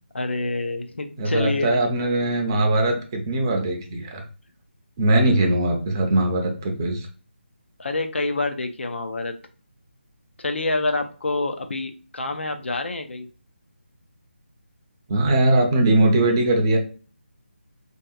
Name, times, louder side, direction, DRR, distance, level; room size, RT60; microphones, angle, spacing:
voice 1, 0.1-1.7 7.8-9.3 10.4-13.3, left 2 dB, 75° left, 6 dB, 0.5 m, -27 dB
voice 2, 1.2-4.2 5.0-7.1 15.1-16.8, right 1 dB, 20° right, 3 dB, 0.5 m, -20 dB
3.4 x 2.7 x 2.3 m, 0.37 s
figure-of-eight pair, 160°, 6 cm